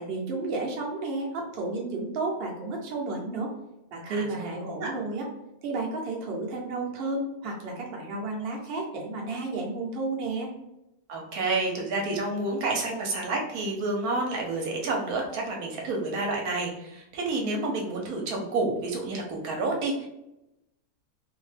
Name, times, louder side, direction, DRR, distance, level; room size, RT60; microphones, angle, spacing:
voice 1, 0.0-3.5 3.9-5.3 5.6-10.5, right 3 dB, 50° right, -1 dB, 0.7 m, -32 dB
voice 2, 4.1-4.9 11.1-20.1, right 2 dB, 80° right, 0 dB, 1.1 m, -29 dB
2.7 x 2.1 x 3.2 m, 0.89 s
omnidirectional pair, 1.6 m